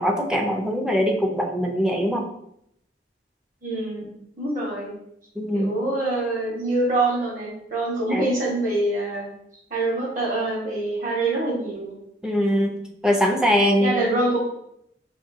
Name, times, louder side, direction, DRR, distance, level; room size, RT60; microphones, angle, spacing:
voice 1, 0.0-2.3 5.4-5.7 8.1-8.3 12.2-12.8 13.0-13.9, equal, 5° right, 1 dB, 0.4 m, -22 dB
voice 2, 3.6-4.1 4.4-4.9 5.5-9.3 9.7-11.9 13.8-14.4, right 2 dB, 50° right, -3 dB, 1.3 m, -25 dB
4.9 x 2.9 x 2.7 m, 0.76 s
head